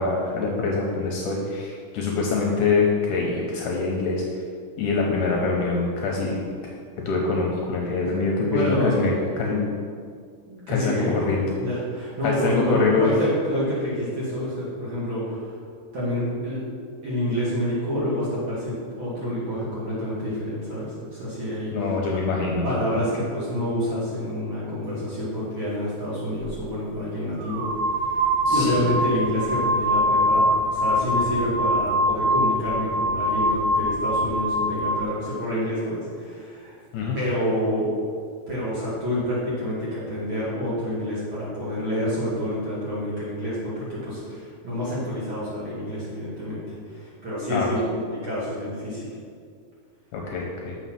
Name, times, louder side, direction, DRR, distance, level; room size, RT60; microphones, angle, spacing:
voice 1, 0.0-4.2 4.8-6.4 7.1-9.7 10.7-11.5 12.2-13.1 21.7-22.7 28.5-28.9 36.9-37.2 47.5-47.7 50.1-50.7, left 4 dB, 75° left, -1 dB, 2.0 m, -24 dB
voice 2, 8.5-9.3 10.5-11.1 11.6-15.5 15.9-16.6 17.0-21.7 22.6-27.7 28.1-36.8 37.1-37.9 38.5-46.6 46.9-49.1, equal, 40° right, -9 dB, 2.5 m, -28 dB
sound 1, 26.4-26.6 27.4-35.1, equal, 80° right, 1.7 m, -23 dB
7.1 x 5.8 x 5.8 m, 2.1 s
omnidirectional pair, 4.2 m